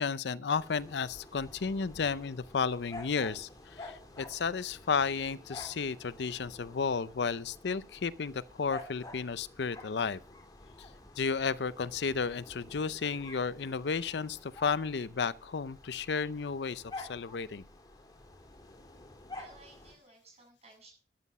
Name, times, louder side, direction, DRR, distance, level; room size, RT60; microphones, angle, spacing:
voice 1, 0.0-3.5 3.8-10.2 11.2-17.6, left 5 dB, 70° left, 0.5 m, -33 dB
sound 1, 0.5-19.9, left 2 dB, 20° left, 2.8 m, -50 dB
voice 2, 19.3-20.9, right 3 dB, 35° right, 7.6 m, -57 dB
12.5 x 9.5 x 5.5 m
head